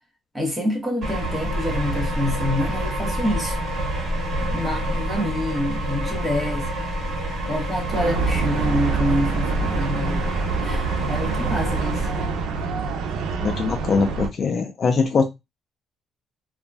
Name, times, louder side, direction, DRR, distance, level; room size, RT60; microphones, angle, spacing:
voice 1, 0.3-3.6 4.4-6.7 7.5-10.3 10.6-12.1, left 1 dB, 5° right, 0.8 m, -27 dB
sound 1, 1.0-12.6, right 1 dB, 45° right, 1.3 m, -27 dB
sound 2, 7.9-14.3, right 5 dB, 85° right, 0.4 m, -26 dB
voice 2, 13.4-15.2, left 5 dB, 35° left, 0.3 m, -22 dB
2.4 x 2.1 x 3.2 m
cardioid pair, 175°, 0 cm